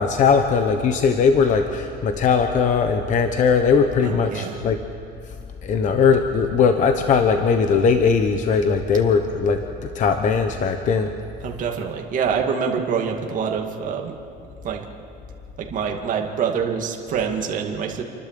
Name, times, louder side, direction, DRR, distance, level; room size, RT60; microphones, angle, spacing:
voice 1, 0.0-4.8 5.2-5.3 5.6-9.6 9.9-11.1, left 5 dB, 40° left, 7 dB, 1.0 m, -19 dB
voice 2, 4.0-4.6 11.4-14.2 14.6-14.8 15.6-18.0, right 6 dB, 40° right, 2 dB, 2.2 m, -25 dB
29.0 x 12.0 x 7.6 m, 2.4 s
cardioid pair, 140°, 20 cm